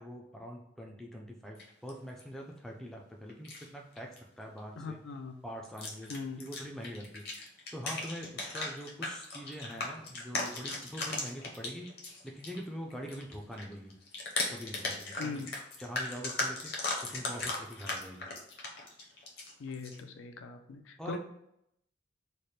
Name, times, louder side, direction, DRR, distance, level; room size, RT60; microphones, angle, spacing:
voice 1, 0.0-5.0 5.4-7.2 7.7-11.9 12.2-13.9 14.5-15.5 15.8-16.7 17.0-18.3 21.0-21.2, equal, ahead, 0 dB, 0.4 m, -44 dB
sound 1, 1.6-2.2 3.3-3.7 4.0-4.2 4.6-4.8 5.6-12.6 12.9-20.0, left 2 dB, 50° left, 0.7 m, -38 dB
voice 2, 4.8-5.3 6.1-6.4 15.2-15.5 19.6-21.2, left 4 dB, 85° left, 6 dB, 0.4 m, -40 dB
3.3 x 2.1 x 4.1 m, 0.76 s
head